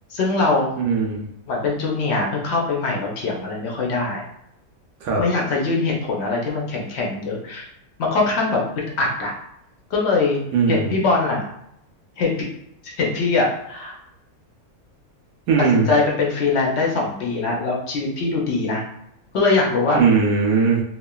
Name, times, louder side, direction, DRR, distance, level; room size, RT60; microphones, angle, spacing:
voice 1, 0.1-0.7 1.5-4.2 5.2-7.7 8.0-8.6 9.0-9.3 9.9-10.4 10.7-11.4 12.2-12.3 12.8-14.0 15.6-18.8 19.3-20.0, left 3 dB, 65° left, -2 dB, 0.7 m, -22 dB
voice 2, 0.8-1.3 5.0-5.2 10.5-10.9 15.5-15.9 19.9-20.8, right 5 dB, 75° right, 0 dB, 1.0 m, -19 dB
3.1 x 2.2 x 2.2 m, 0.78 s
omnidirectional pair, 1.6 m